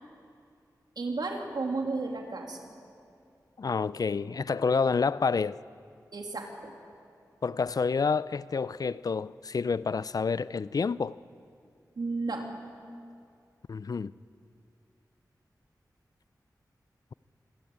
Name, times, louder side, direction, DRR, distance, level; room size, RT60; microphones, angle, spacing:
voice 1, 1.0-2.7 6.1-6.7 12.0-12.5, right 3 dB, 75° right, 3.0 m, -33 dB
voice 2, 3.6-5.6 7.4-11.2 13.7-14.1, left 5 dB, 60° left, 0.5 m, -28 dB
25.5 x 17.5 x 8.8 m
wide cardioid pair, 65°, 7 cm